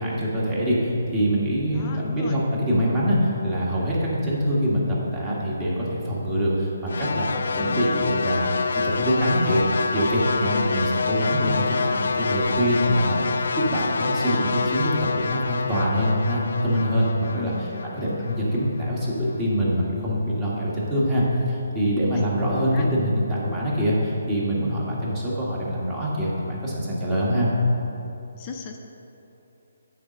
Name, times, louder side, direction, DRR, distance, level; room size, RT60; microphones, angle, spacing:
voice 1, 0.0-8.5 8.8-27.5, equal, 15° right, -6 dB, 1.5 m, -24 dB
voice 2, 1.7-2.4 7.6-8.0 10.5-10.7 17.3-18.2 22.1-22.3 22.7-22.8 28.4-28.8, left 5 dB, 25° left, 2 dB, 0.6 m, -36 dB
sound 1, 6.9-19.1, left 4 dB, 70° left, 0.3 m, -27 dB
8.3 x 4.2 x 6.2 m, 2.9 s
hypercardioid pair, 165°, 0 cm